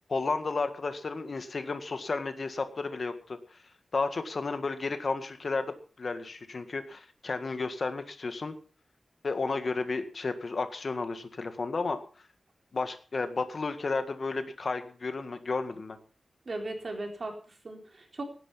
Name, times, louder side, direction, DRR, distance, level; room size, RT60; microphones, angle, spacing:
voice 1, 0.1-3.6 3.9-8.5 9.2-12.0 12.7-16.0, left 3 dB, 50° left, 9 dB, 1.8 m, -32 dB
voice 2, 16.5-18.2, right 2 dB, 45° right, 3 dB, 4.1 m, -37 dB
18.0 x 11.0 x 5.7 m, 0.39 s
wide cardioid pair, 130°, 0 cm